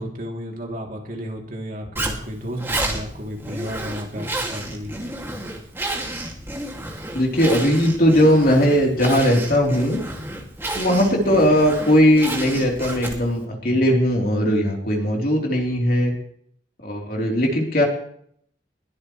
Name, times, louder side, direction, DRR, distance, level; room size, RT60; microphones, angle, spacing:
voice 1, 0.0-4.9, equal, 45° right, 0 dB, 3.1 m, -32 dB
Zipper (clothing), 2.0-13.4, right 1 dB, 15° right, 2.4 m, -31 dB
voice 2, 7.1-10.0 10.7-16.1 16.8-17.8, equal, 50° left, -1 dB, 3.8 m, -18 dB
21.0 x 13.5 x 3.3 m, 0.65 s
head